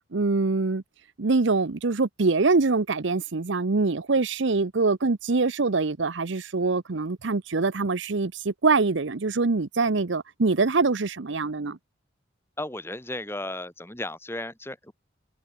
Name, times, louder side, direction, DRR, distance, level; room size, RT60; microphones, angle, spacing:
voice 1, 0.1-0.8 1.2-11.8, right 3 dB, 65° right, 0.8 m, -24 dB
voice 2, 12.6-14.9, left 1 dB, 10° left, 3.1 m, -34 dB
head